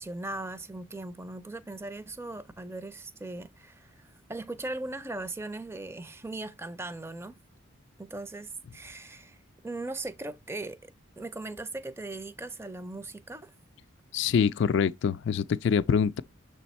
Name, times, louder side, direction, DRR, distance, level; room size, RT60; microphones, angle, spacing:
voice 1, 0.0-7.4 8.0-9.4 9.6-10.9 11.2-13.5, right 2 dB, 10° right, 0.5 m, -39 dB
voice 2, 14.1-16.2, left 6 dB, 55° left, 0.3 m, -25 dB
6.9 x 3.4 x 4.2 m
head